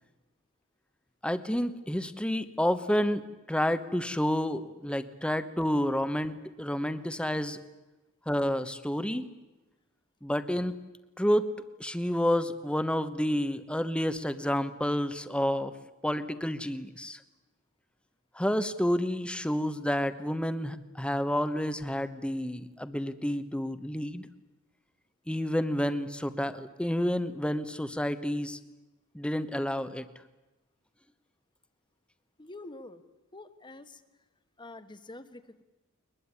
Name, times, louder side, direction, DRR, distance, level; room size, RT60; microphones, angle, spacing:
voice 1, 1.2-3.2 3.5-7.6 8.3-9.2 10.2-10.7 11.2-11.5 11.8-15.7 16.0-17.2 18.3-24.3 25.3-28.6 29.1-30.0, equal, 5° left, 12 dB, 1.1 m, -29 dB
voice 2, 32.4-33.0 33.3-34.0 34.6-35.6, left 2 dB, 20° left, 11 dB, 1.4 m, -46 dB
22.0 x 21.5 x 9.8 m, 1.1 s
head